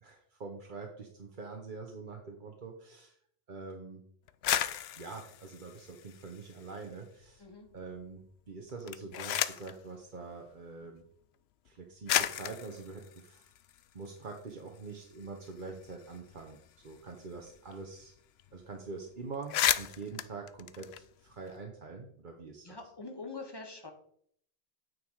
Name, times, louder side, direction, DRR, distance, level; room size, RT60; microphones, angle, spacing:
voice 1, 0.0-3.2 3.5-4.0 5.0-7.4 7.7-11.0 11.6-13.5 13.9-16.6 16.8-18.1 18.5-22.8, right 4 dB, 50° right, 2 dB, 1.1 m, -45 dB
sound 1, 4.3-6.9 7.2-7.9 8.7-9.8 10.8-10.9 11.7-11.8 12.1-14.4 14.8-14.9 15.1-17.7 18.0-18.1 18.4-18.6 19.0-19.1 19.3-21.6, left 11 dB, 80° left, 0.8 m, -35 dB
voice 2, 7.4-7.7 22.6-23.9, left 3 dB, 25° left, 4 dB, 1.5 m, -44 dB
9.2 x 6.5 x 4.7 m, 0.65 s
omnidirectional pair, 1.1 m